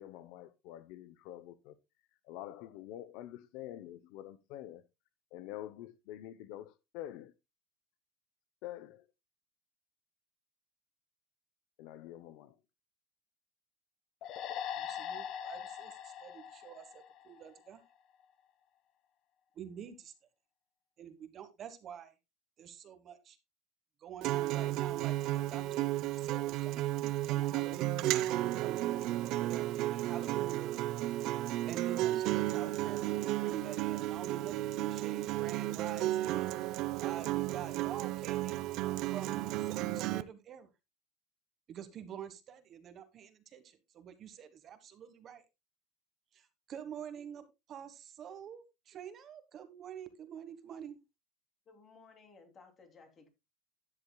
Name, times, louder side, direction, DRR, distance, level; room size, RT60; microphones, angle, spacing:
voice 1, 0.0-1.7 2.2-4.8 5.3-7.3 8.6-9.0 11.8-12.6, left 13 dB, 60° left, 0.7 m, -46 dB
sound 1, 14.2-17.7, left 9 dB, 45° left, 1.3 m, -42 dB
voice 2, 14.8-17.8 19.5-20.1 21.0-22.1 22.6-23.4 24.0-25.9 26.2-28.3 28.6-30.9 31.7-36.6 37.0-38.7 39.1-40.7 41.7-45.4 46.3-51.0, right 9 dB, 35° right, 1.3 m, -47 dB
Acoustic guitar, 24.2-40.2, right 15 dB, 50° right, 0.6 m, -33 dB
voice 3, 51.7-53.3, left 4 dB, 25° left, 2.8 m, -58 dB
13.0 x 9.8 x 2.2 m
cardioid pair, 155°, 0 cm